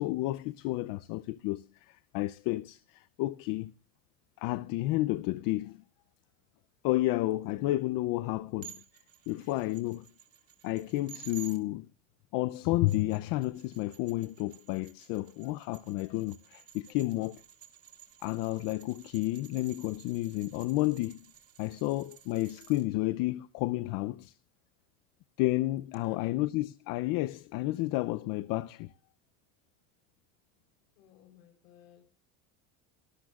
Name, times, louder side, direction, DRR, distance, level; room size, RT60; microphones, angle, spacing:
voice 1, 0.0-3.7 4.4-5.8 6.8-8.7 9.3-10.1 10.6-11.9 12.3-17.4 18.2-21.2 21.6-24.3 25.4-28.9, left 18 dB, 60° left, 0.6 m, -31 dB
voice 2, 7.3-7.7 9.3-9.7 16.9-17.3 26.0-26.3 30.9-32.1, left 9 dB, 90° left, 4.1 m, -59 dB
sound 1, 8.6-11.6 12.7-22.8, right 11 dB, 40° right, 2.2 m, -53 dB
23.0 x 13.0 x 2.4 m
supercardioid pair, 125°, 38 cm